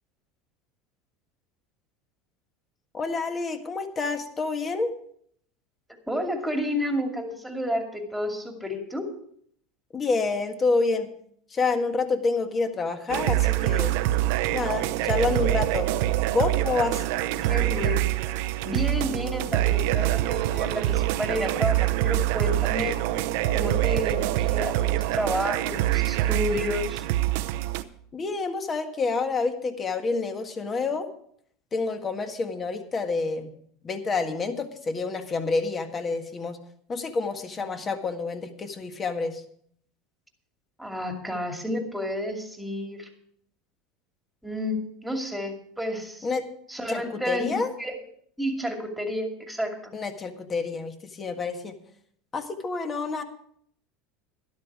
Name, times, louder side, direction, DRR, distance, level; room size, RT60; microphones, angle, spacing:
voice 1, 2.9-4.9 9.9-11.1 11.5-14.0 14.5-15.9 16.3-17.1 28.1-31.1 31.7-33.5 33.8-36.6 36.9-39.4 46.2-46.5 46.9-47.7 49.9-51.8 52.3-53.2, left 4 dB, 25° left, 7 dB, 1.7 m, -28 dB
voice 2, 6.1-9.1 17.4-18.1 18.6-23.0 23.5-27.0 40.8-43.1 44.4-46.3 46.7-47.9 48.4-49.9, left 1 dB, ahead, 3 dB, 2.5 m, -30 dB
sound 1, 13.1-27.8, right 15 dB, 70° right, 0.8 m, -25 dB
12.5 x 12.0 x 4.8 m, 0.64 s
supercardioid pair, 115°, 0 cm